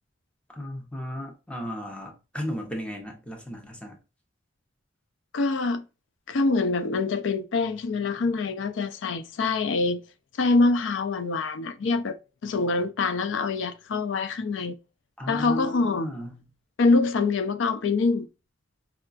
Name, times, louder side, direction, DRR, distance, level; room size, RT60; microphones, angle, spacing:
voice 1, 0.5-4.0 15.2-16.5, left 1 dB, 5° left, 0.7 m, -35 dB
voice 2, 5.3-5.8 6.3-10.0 10.4-14.8 15.3-16.1 16.8-18.3, left 3 dB, 75° left, 0.4 m, -25 dB
4.6 x 2.2 x 2.4 m
head